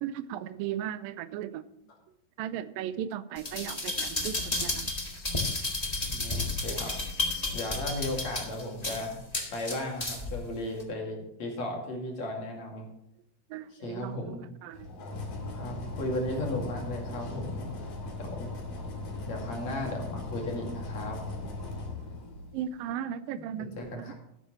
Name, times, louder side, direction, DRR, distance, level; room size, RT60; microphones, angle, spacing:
voice 1, 0.0-1.7 2.4-4.9 13.5-14.9 22.5-24.1, right 10 dB, 85° right, 14 dB, 2.3 m, -36 dB
sound 1, 3.4-10.4 10.8-10.9, left 2 dB, 25° left, 0.8 m, -32 dB
voice 2, 6.1-6.9 7.5-9.2 9.5-12.9 13.7-14.4 15.5-17.7 18.2-18.5 19.3-21.2 23.6-24.1, left 1 dB, 50° left, 0 dB, 3.4 m, -35 dB
sound 2, 14.7-22.7, left 2 dB, 70° left, 3.8 m, -38 dB
13.0 x 11.5 x 3.1 m, 0.84 s
omnidirectional pair, 4.0 m